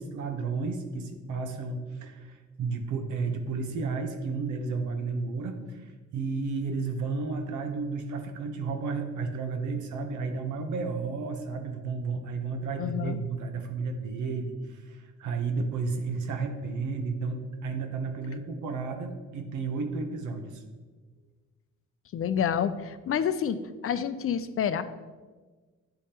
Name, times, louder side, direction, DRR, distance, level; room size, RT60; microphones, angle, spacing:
voice 1, 0.0-20.6, right 4 dB, 75° right, 6 dB, 1.0 m, -32 dB
voice 2, 12.8-13.2 22.1-23.6 23.8-24.8, left 8 dB, 45° left, 12 dB, 0.5 m, -28 dB
9.7 x 3.5 x 4.3 m, 1.3 s
cardioid pair, 90°, 30 cm